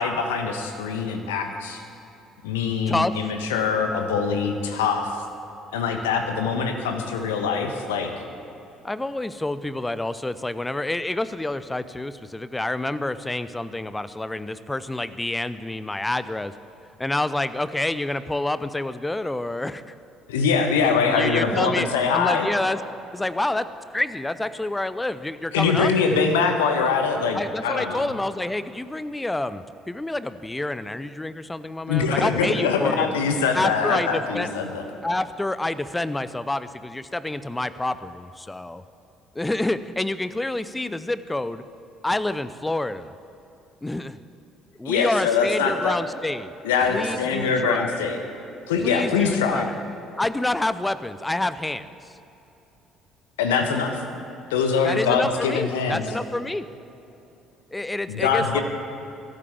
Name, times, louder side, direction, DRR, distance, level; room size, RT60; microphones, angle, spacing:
voice 1, 0.0-1.8 2.4-5.2 5.7-8.1 20.3-22.5 25.5-28.1 31.9-34.8 44.8-46.0 46.6-48.2 48.7-49.7 53.4-54.0 54.5-56.0 58.1-58.6, left 5 dB, 70° left, 6 dB, 1.2 m, -23 dB
voice 2, 2.9-3.2 8.8-16.5 17.0-19.9 21.0-21.9 22.1-22.8 23.1-23.7 23.9-25.9 27.3-33.1 33.5-34.5 35.0-38.8 39.3-41.6 42.0-43.1 43.8-44.2 44.8-46.5 46.9-48.0 48.8-49.8 50.2-51.9 54.8-56.7 57.7-58.6, left 2 dB, 10° left, 14 dB, 0.7 m, -28 dB
23.0 x 13.5 x 3.6 m, 2.9 s
figure-of-eight pair, 50°, 0 cm